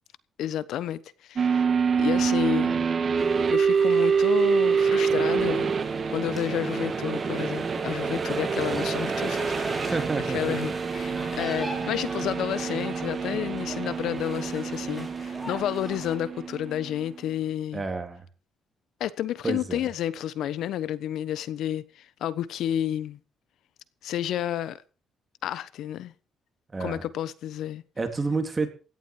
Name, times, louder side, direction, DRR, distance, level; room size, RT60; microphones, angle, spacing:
voice 1, 0.4-1.6 2.0-2.7 3.5-5.7 6.1-10.0 10.3-17.8 19.0-23.2 24.0-24.8 25.4-26.1 26.8-27.8, left 11 dB, 80° left, 1.1 m, -31 dB
sound 1, 1.4-17.1, right 6 dB, 45° right, 1.7 m, -26 dB
sound 2, 3.2-16.2, equal, ahead, 6.3 m, -40 dB
voice 2, 9.7-10.6 17.7-18.2 19.4-19.8 26.7-27.0 28.0-28.7, right 3 dB, 25° right, 3.4 m, -29 dB
17.0 x 11.5 x 4.9 m
cardioid pair, 90°, 0 cm